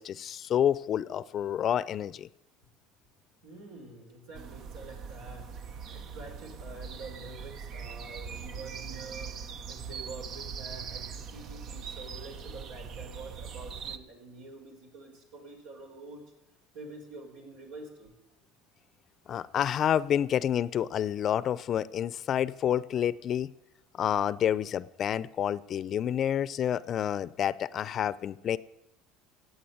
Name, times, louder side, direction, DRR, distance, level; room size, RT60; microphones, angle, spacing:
voice 1, 0.0-2.3 19.3-23.5 24.0-28.6, left 10 dB, 45° left, 18 dB, 0.6 m, -29 dB
voice 2, 3.4-9.4 9.7-16.2 16.7-18.1, right 2 dB, 80° right, 2 dB, 4.9 m, -47 dB
sound 1, 4.3-14.0, right 6 dB, 55° right, 1.1 m, -41 dB
15.5 x 8.7 x 9.4 m, 0.86 s
supercardioid pair, 95°, 0 cm